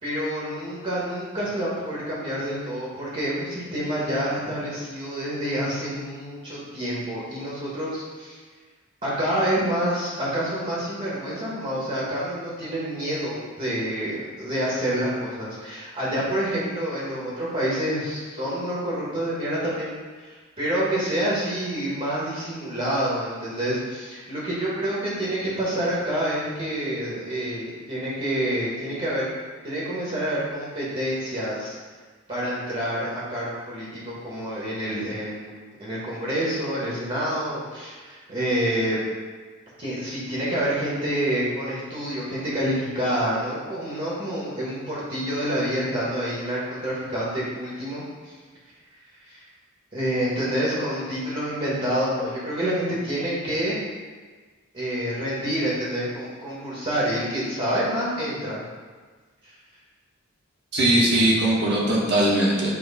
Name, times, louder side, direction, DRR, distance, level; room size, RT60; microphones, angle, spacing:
voice 1, 0.0-8.4 9.0-29.3 29.6-31.8 32.3-39.0 39.8-48.4 49.2-49.4 49.9-53.8 54.7-58.6 59.4-59.6, equal, 30° right, -7 dB, 1.4 m, -28 dB
voice 2, 60.7-62.8, right 1 dB, 50° right, -4 dB, 1.4 m, -20 dB
8.5 x 3.1 x 4.1 m, 1.4 s
head